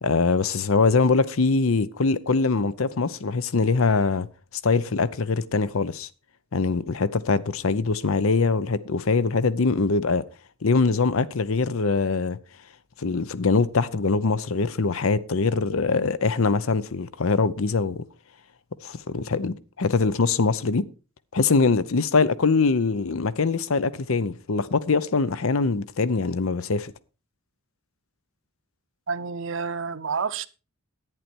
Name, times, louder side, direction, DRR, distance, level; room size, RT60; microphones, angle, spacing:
voice 1, 0.0-4.3 4.6-6.1 6.5-10.2 10.6-12.4 13.0-18.0 18.8-20.9 21.3-26.9, left 4 dB, 70° left, 0.7 m, -23 dB
voice 2, 29.1-30.5, right 5 dB, 55° right, 0.7 m, -29 dB
11.0 x 9.8 x 4.4 m
head